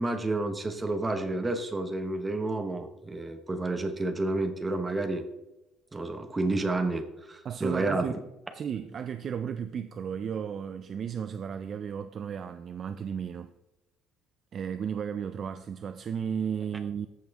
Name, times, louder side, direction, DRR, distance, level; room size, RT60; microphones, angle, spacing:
voice 1, 0.0-5.2 5.9-8.2, right 2 dB, 10° right, 0.8 m, -30 dB
voice 2, 7.4-8.1 8.5-13.5 14.5-17.1, right 7 dB, 30° right, 0.3 m, -34 dB
14.0 x 5.4 x 3.4 m
cardioid pair, 175°, 0 cm